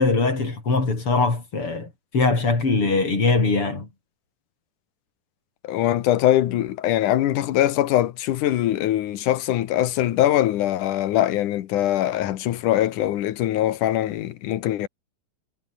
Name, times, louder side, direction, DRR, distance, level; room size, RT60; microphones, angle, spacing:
voice 1, 0.0-3.9, left 3 dB, 40° left, 7.0 m, -22 dB
voice 2, 5.6-14.9, left 13 dB, 75° left, 2.6 m, -22 dB
omnidirectional pair, 3.8 m